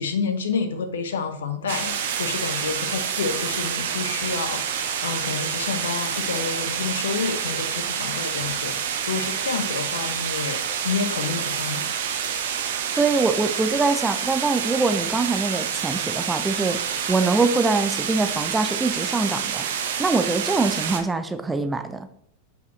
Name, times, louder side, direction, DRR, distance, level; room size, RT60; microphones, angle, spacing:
voice 1, 0.0-11.9, left 5 dB, 65° left, 8 dB, 0.8 m, -29 dB
sound 1, 1.7-21.0, right 8 dB, 55° right, 0.8 m, -28 dB
voice 2, 13.0-16.8 17.1-19.7 20.0-22.1, right 3 dB, 10° right, 9 dB, 0.4 m, -23 dB
7.9 x 4.7 x 3.1 m, 0.71 s
figure-of-eight pair, 90°, 0 cm